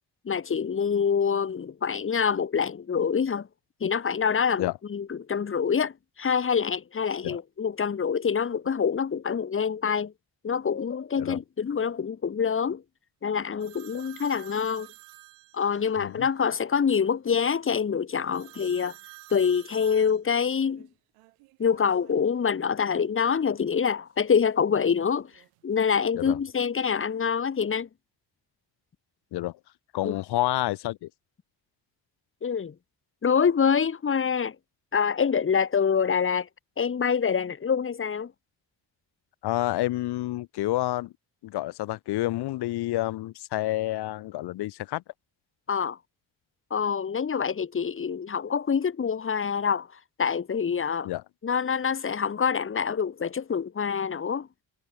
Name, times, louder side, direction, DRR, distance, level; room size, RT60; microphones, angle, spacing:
voice 1, 0.2-3.5 3.8-10.1 10.4-12.8 13.2-14.9 15.5-18.9 19.3-20.9 21.6-25.3 25.6-27.9 30.0-30.1 32.4-32.7 33.2-34.6 34.9-36.5 36.8-38.3 45.7-46.0 46.7-49.9 50.2-51.1 51.4-54.5, left 6 dB, 25° left, 0.9 m, -26 dB
sound 1, 13.6-16.0 18.3-22.6 22.9-24.1 24.9-25.8, right 25 dB, 85° right, 1.6 m, -51 dB
voice 2, 15.9-16.3 26.1-26.4 29.3-29.6 29.9-31.1 39.4-41.1 41.4-45.0 51.0-51.2, left 16 dB, 55° left, 0.6 m, -29 dB
hypercardioid pair, 45°, 50 cm